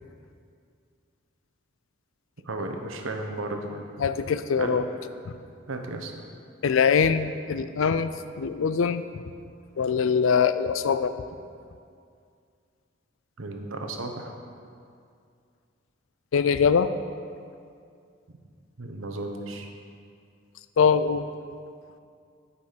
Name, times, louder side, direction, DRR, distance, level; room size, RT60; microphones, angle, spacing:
voice 1, 2.4-3.8 4.6-4.8 5.7-6.1 13.4-14.3 18.8-19.7, right 2 dB, 90° right, 4 dB, 0.9 m, -34 dB
voice 2, 4.0-4.9 6.6-8.1 8.4-9.2 9.8-11.2 16.3-16.9 20.8-21.2, left 6 dB, 80° left, 12 dB, 0.4 m, -23 dB
10.5 x 5.6 x 5.1 m, 2.3 s
head